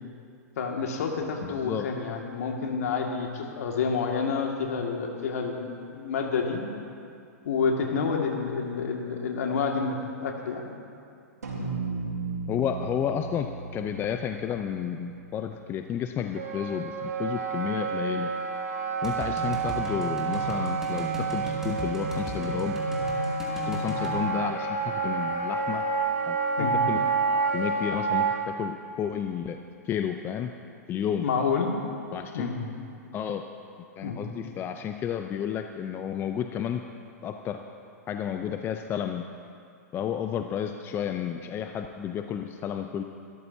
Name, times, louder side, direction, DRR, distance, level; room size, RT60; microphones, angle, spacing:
voice 1, 0.6-6.6 7.5-10.0 10.2-10.7 26.6-26.8 31.2-31.7 32.3-32.6 34.0-34.2, left 5 dB, 65° left, 1 dB, 2.1 m, -29 dB
voice 2, 1.4-1.9 12.5-18.3 19.0-22.8 23.6-25.9 26.3-27.0 27.5-30.5 30.9-31.3 32.1-32.5 33.1-33.4 34.0-36.8 37.2-37.6 38.1-39.3 39.9-43.0, left 9 dB, 25° left, 6 dB, 0.6 m, -31 dB
sound 1, 11.4-16.0, right 4 dB, 85° right, 3.9 m, -36 dB
Wind instrument woodwind instrument, 16.3-28.4, right 4 dB, 65° right, 2.2 m, -29 dB
sound 2, 19.0-24.2, right 1 dB, 5° right, 2.6 m, -35 dB
24.5 x 13.5 x 2.8 m, 2.4 s
hypercardioid pair, 110°, 9 cm